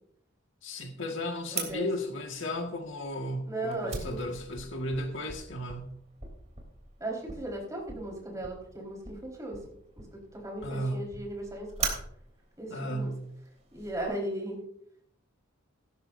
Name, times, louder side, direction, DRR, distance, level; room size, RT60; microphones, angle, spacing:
voice 1, 0.6-5.9 10.6-11.0 12.7-13.3, left 1 dB, 65° left, 1.7 m, -34 dB
voice 2, 1.5-1.9 3.5-4.2 7.0-9.6 10.0-11.9 12.6-13.1 13.7-14.6, right 1 dB, 15° right, 4.4 m, -37 dB
Fire, 1.5-14.0, right 4 dB, 35° right, 3.3 m, -42 dB
17.0 x 13.0 x 2.6 m
head